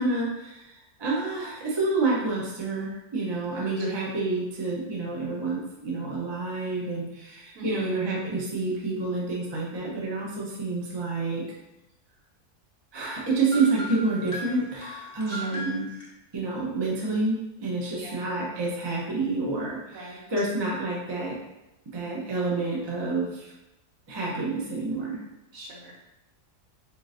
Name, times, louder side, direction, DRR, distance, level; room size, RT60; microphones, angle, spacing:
voice 1, 0.0-11.4 12.9-15.9 16.3-21.4 21.9-23.5 24.1-25.2, right 3 dB, 30° right, -4 dB, 0.5 m, -28 dB
voice 2, 3.6-4.0 7.5-8.1 15.3-15.7 17.9-18.3 19.9-20.5 25.5-26.0, right 1 dB, 65° right, -3 dB, 1.2 m, -43 dB
sound 1, 13.5-16.1, equal, 35° left, 0.8 m, -38 dB
3.8 x 3.7 x 2.5 m, 0.92 s
omnidirectional pair, 1.7 m